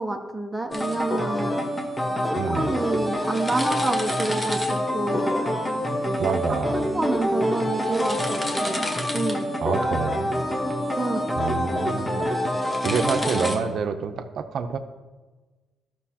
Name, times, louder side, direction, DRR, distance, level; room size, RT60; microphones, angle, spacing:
voice 1, 0.0-1.6 2.2-5.4 6.7-8.9 9.1-9.5 11.0-11.2, right 2 dB, 10° right, 3 dB, 0.7 m, -28 dB
sound 1, 0.7-13.6, equal, 20° left, 1.1 m, -26 dB
voice 2, 2.3-2.7 6.2-6.9 9.6-10.4 11.4-12.3 12.8-14.8, right 6 dB, 65° right, 8 dB, 0.6 m, -27 dB
12.0 x 6.1 x 2.9 m, 1.3 s
cardioid pair, 90°, 0 cm